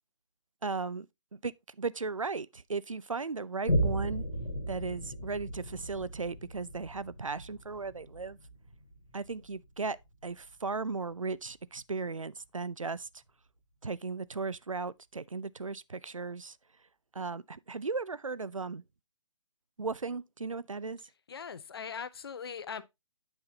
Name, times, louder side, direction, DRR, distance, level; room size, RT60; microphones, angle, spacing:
voice 1, 0.6-1.1 1.4-1.5 1.8-4.2 4.7-8.4 9.1-10.0 10.2-13.1 13.8-16.5 17.2-18.8 19.8-21.0, right 4 dB, 85° right, 0.4 m, -36 dB
Boom, 3.7-10.6 11.1-11.2, equal, 85° left, 2.1 m, -36 dB
voice 2, 21.3-22.8, left 6 dB, 50° left, 0.6 m, -40 dB
8.8 x 5.7 x 2.7 m
figure-of-eight pair, 135°, 16 cm